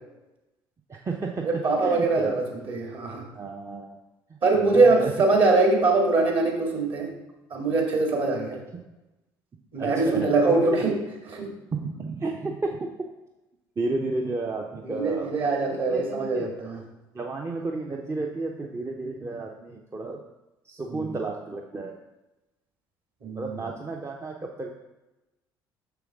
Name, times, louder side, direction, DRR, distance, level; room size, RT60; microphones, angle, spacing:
voice 1, 0.9-1.5 1.8-2.3 2.6-2.7 3.3-4.0 4.5-5.1 8.5-8.8 9.8-10.3 10.7-10.8 11.7-12.9 13.8-16.5 17.1-20.2 20.6-22.0 23.3-24.7, right 3 dB, 25° right, 1 dB, 0.7 m, -32 dB
voice 2, 1.4-3.2 4.4-7.1 7.5-8.6 9.7-10.9 11.3-11.5 14.8-16.8 20.8-21.2 23.2-23.6, right 3 dB, 50° right, 0 dB, 2.1 m, -23 dB
6.9 x 6.4 x 3.6 m, 1.0 s
figure-of-eight pair, 55°, 12 cm